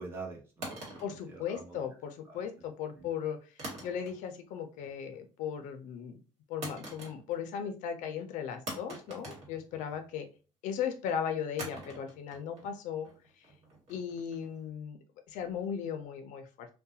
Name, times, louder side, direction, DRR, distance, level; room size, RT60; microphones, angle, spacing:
voice 1, 0.0-1.8 2.3-2.4 3.0-3.1, right 3 dB, 20° right, -1 dB, 0.8 m, -45 dB
sound 1, 0.6-2.0 3.6-4.4 4.7-5.2 6.6-7.6 7.8-7.9 8.7-10.2 11.6-14.6, right 1 dB, 60° right, 1.3 m, -45 dB
voice 2, 1.0-6.2 6.5-10.3 10.6-13.1 13.4-13.5 13.9-16.7, left 8 dB, 80° left, 6 dB, 0.4 m, -37 dB
2.3 x 2.2 x 2.7 m, 0.35 s
cardioid pair, 115°, 13 cm